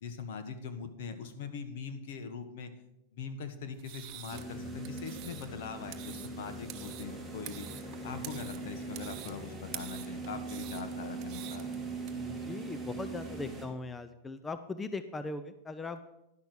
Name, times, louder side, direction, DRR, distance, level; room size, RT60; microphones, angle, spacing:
voice 1, 0.0-2.7 3.1-7.7 8.0-11.6, left 6 dB, 65° left, 8 dB, 1.4 m, -42 dB
sound 1, 3.7-12.1, right 13 dB, 40° right, 0.9 m, -48 dB
sound 2, 4.3-13.6, right 3 dB, ahead, 2.5 m, -41 dB
voice 2, 12.1-16.0, left 3 dB, 15° left, 11 dB, 0.5 m, -39 dB
11.0 x 6.1 x 6.8 m, 0.89 s
supercardioid pair, 135°, 0 cm